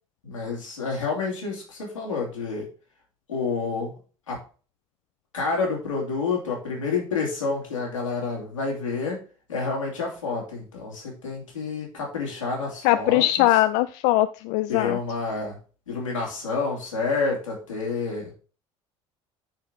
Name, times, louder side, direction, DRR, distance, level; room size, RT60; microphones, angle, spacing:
voice 1, 0.2-2.7 3.3-3.9 4.3-4.4 5.3-9.2 9.5-13.5 14.7-15.6 15.9-18.3, left 4 dB, 85° left, -2 dB, 2.9 m, -29 dB
voice 2, 12.8-15.0, left 15 dB, 60° left, 12 dB, 0.5 m, -21 dB
8.8 x 5.0 x 3.8 m, 0.37 s
figure-of-eight pair, 60°, 16 cm